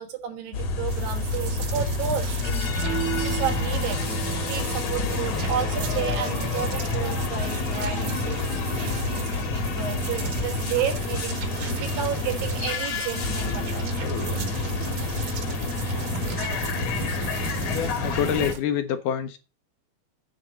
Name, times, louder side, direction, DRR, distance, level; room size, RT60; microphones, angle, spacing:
voice 1, 0.0-8.4 8.8-14.0 15.0-15.1 15.7-15.9, right 8 dB, 75° right, 3.2 m, -32 dB
sound 1, 0.5-18.5, left 3 dB, 60° left, 2.1 m, -28 dB
sound 2, 0.9-18.6, right 7 dB, 60° right, 2.5 m, -38 dB
Electric guitar / Strum, 2.7-7.8, right 10 dB, 40° right, 1.4 m, -37 dB
voice 2, 17.7-19.4, left 9 dB, 75° left, 2.2 m, -26 dB
9.6 x 4.2 x 7.4 m
omnidirectional pair, 4.1 m